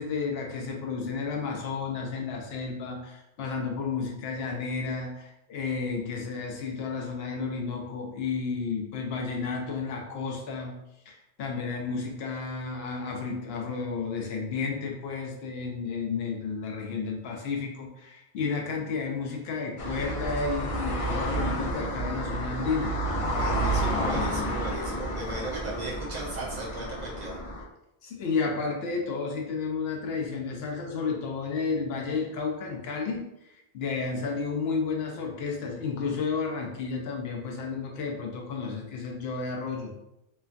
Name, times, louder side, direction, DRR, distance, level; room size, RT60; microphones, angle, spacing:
voice 1, 0.0-10.7 11.1-22.9 28.0-33.3 33.7-39.9, left 4 dB, 75° left, 1 dB, 0.8 m, -32 dB
sound 1, 19.8-27.6, right 1 dB, 40° left, 0.5 m, -30 dB
voice 2, 23.3-27.4, right 2 dB, 50° right, -3 dB, 0.6 m, -36 dB
3.0 x 2.3 x 2.4 m, 0.88 s
omnidirectional pair, 1.0 m